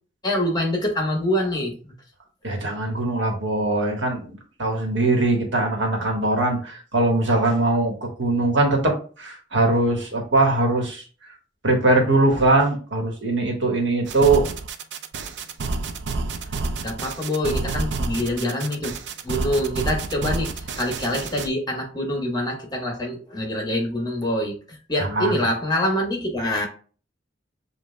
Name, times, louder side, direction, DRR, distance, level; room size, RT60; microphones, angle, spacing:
voice 1, 0.2-1.9 16.8-18.9 19.2-26.7, left 1 dB, 20° left, 2 dB, 1.1 m, -25 dB
voice 2, 2.4-11.0 11.6-14.5 25.0-25.4, right 2 dB, 90° right, 1 dB, 1.4 m, -21 dB
sound 1, 14.1-21.5, right 3 dB, 65° right, 0.4 m, -29 dB
7.3 x 2.5 x 2.2 m, 0.38 s
head